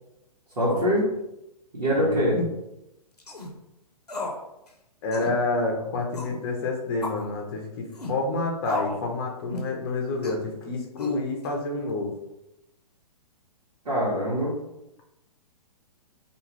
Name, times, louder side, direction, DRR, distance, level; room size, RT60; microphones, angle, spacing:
voice 1, 0.6-1.0 1.7-2.4 13.8-14.5, equal, 70° right, -8 dB, 1.1 m, -23 dB
voice 2, 1.9-2.4 5.0-12.1, left 3 dB, 40° left, 1 dB, 0.7 m, -29 dB
sound 1, 3.2-3.5 4.1-4.4 4.7-4.8 5.1-5.4 6.1-6.4 7.0-7.3 7.9-8.2 8.6-9.0 9.5-9.7 10.2-10.4 11.0-11.5, left 2 dB, 80° left, 0.6 m, -34 dB
2.5 x 2.3 x 3.2 m, 0.88 s
figure-of-eight pair, 120°, 20 cm